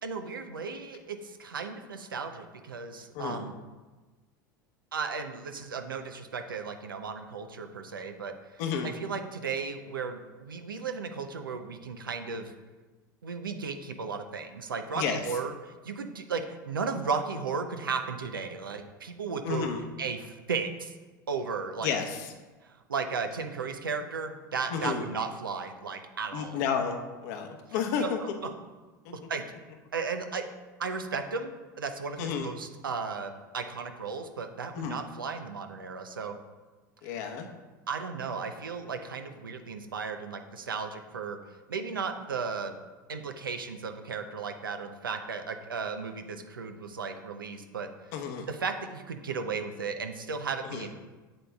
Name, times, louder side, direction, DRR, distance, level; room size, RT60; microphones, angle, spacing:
voice 1, 0.0-3.5 4.9-8.3 8.8-12.5 13.2-20.9 21.3-21.9 22.6-26.6 28.0-28.3 29.3-29.4 29.9-30.5 30.8-36.4 37.0-37.4 37.9-41.4 41.7-42.7 43.1-47.9 48.5-50.9, right 5 dB, 90° right, 7 dB, 0.6 m, -35 dB
voice 2, 3.1-3.5 8.6-8.9 14.9-15.2 19.4-19.8 21.8-22.3 24.7-25.0 26.3-28.4 29.0-29.1 32.2-32.5 34.7-35.0 37.0-37.5 48.1-48.5 50.6-50.9, left 6 dB, 60° left, 4 dB, 1.0 m, -31 dB
7.8 x 7.7 x 2.3 m, 1.2 s
hypercardioid pair, 80°, 11 cm